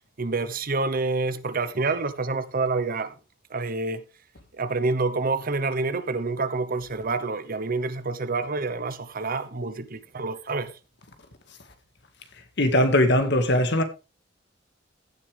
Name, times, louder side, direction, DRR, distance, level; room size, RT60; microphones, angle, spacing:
voice 1, 0.2-3.1 3.5-4.0 4.5-10.7, right 3 dB, 50° right, 0.9 m, -27 dB
voice 2, 12.6-13.8, left 1 dB, 65° left, 1.9 m, -20 dB
16.0 x 6.8 x 3.4 m
head